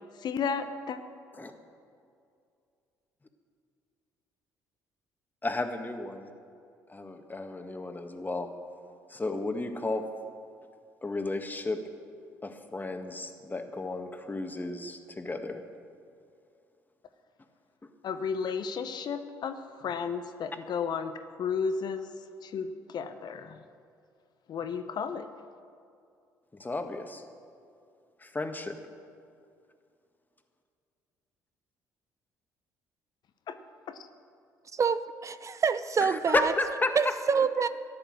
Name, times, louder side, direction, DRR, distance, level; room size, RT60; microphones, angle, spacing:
voice 1, 0.2-1.0 18.0-22.1 22.4-23.6 24.5-25.3 33.5-33.6 33.9-34.0, left 6 dB, 55° left, 9 dB, 0.9 m, -33 dB
voice 2, 5.4-6.3 6.9-8.5 9.1-10.1 11.0-11.8 12.4-15.6 17.8-17.9 26.5-27.2 28.2-28.8 36.0-37.1, left 2 dB, 20° left, 6 dB, 1.7 m, -33 dB
voice 3, 34.7-36.5 37.0-37.7, right 6 dB, 35° right, 14 dB, 0.5 m, -26 dB
14.0 x 11.0 x 6.4 m, 2.4 s
hypercardioid pair, 50°, 9 cm